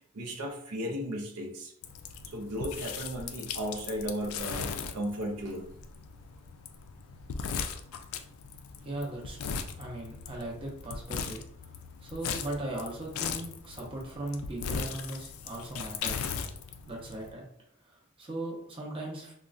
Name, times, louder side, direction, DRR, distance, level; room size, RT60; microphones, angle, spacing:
voice 1, 0.1-1.7 2.3-5.7, equal, 85° right, 2 dB, 0.6 m, -35 dB
sound 1, 1.8-17.3, left 6 dB, 75° left, 0.3 m, -39 dB
voice 2, 8.8-9.4 9.8-11.4 12.0-16.5 16.9-17.4 17.8-19.3, right 1 dB, 25° right, -3 dB, 0.7 m, -38 dB
3.5 x 2.1 x 2.4 m, 0.68 s
head